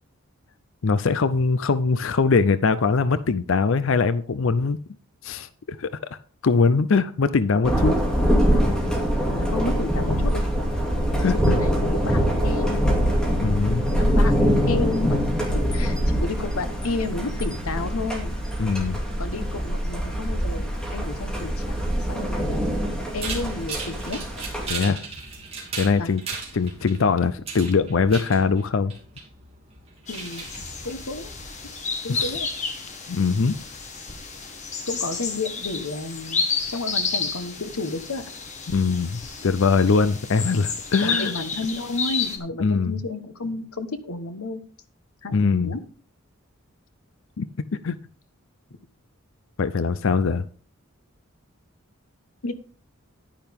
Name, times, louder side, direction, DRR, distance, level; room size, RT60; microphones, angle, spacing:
voice 1, 0.8-4.8 5.2-8.0 11.2-11.5 13.3-13.8 18.6-19.0 24.7-25.0 25.7-26.2 26.5-28.9 32.1-32.3 33.1-33.6 38.7-41.3 42.6-43.0 45.3-45.7 47.4-47.5 47.8-48.0 49.6-50.4, left 4 dB, 65° left, 14 dB, 0.5 m, -22 dB
Thunder, 7.6-24.7, equal, 5° left, 2.4 m, -23 dB
voice 2, 9.4-10.4 11.3-12.9 13.9-14.3 14.7-15.3 15.7-18.3 19.2-21.7 22.1-24.2 24.9-25.0 26.0-26.1 30.1-30.5 30.8-31.3 32.0-32.5 34.9-38.2 41.0-44.6 45.2-45.8 52.4-52.5, left 3 dB, 85° left, 10 dB, 1.2 m, -31 dB
sound 1, 23.2-31.4, right 4 dB, 25° right, 3.0 m, -37 dB
sound 2, 30.1-42.4, left 5 dB, 30° left, 1.6 m, -31 dB
11.0 x 10.0 x 3.6 m, 0.41 s
head